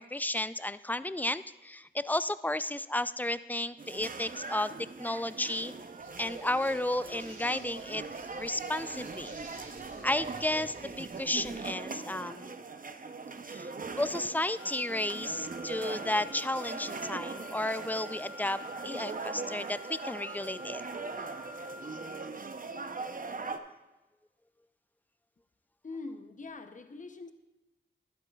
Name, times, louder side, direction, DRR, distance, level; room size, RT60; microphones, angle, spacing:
voice 1, 0.0-4.7 5.0-5.7 6.2-8.0 8.4-9.3 10.0-12.5 13.5-13.7 14.0-20.8, left 1 dB, 10° left, 15 dB, 0.3 m, -33 dB
sound 1, 3.8-23.6, right 4 dB, 45° right, 0.7 m, -41 dB
sound 2, 6.0-11.5, right 2 dB, 75° right, 2.2 m, -54 dB
Wind instrument woodwind instrument, 14.6-22.4, left 4 dB, 90° left, 0.5 m, -49 dB
voice 2, 25.8-27.3, left 3 dB, 40° left, 8 dB, 0.7 m, -43 dB
12.0 x 11.0 x 2.3 m, 1.0 s
cardioid pair, 45°, 20 cm